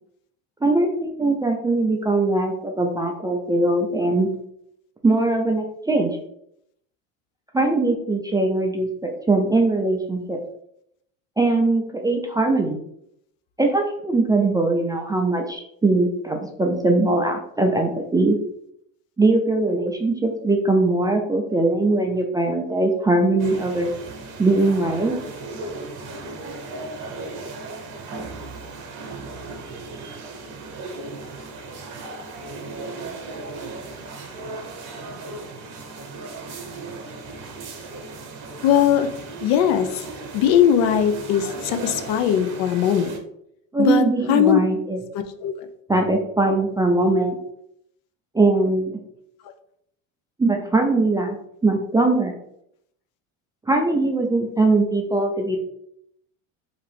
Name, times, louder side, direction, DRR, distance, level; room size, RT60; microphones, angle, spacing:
voice 1, 0.6-4.3 5.0-6.1 7.5-10.4 11.4-12.8 13.6-18.4 19.2-23.9 24.4-25.1 43.7-45.0 45.9-47.3 48.3-49.0 50.4-51.4 51.6-52.3 53.7-55.6, right 2 dB, 10° right, 2 dB, 0.3 m, -21 dB
sound 1, 23.4-43.2, right 3 dB, 50° right, 0.9 m, -36 dB
voice 2, 38.6-39.1 39.4-40.0 40.3-43.2 43.8-44.6 45.1-45.5, left 9 dB, 60° left, 8 dB, 0.5 m, -20 dB
2.8 x 2.4 x 3.3 m, 0.73 s
hypercardioid pair, 75°, 39 cm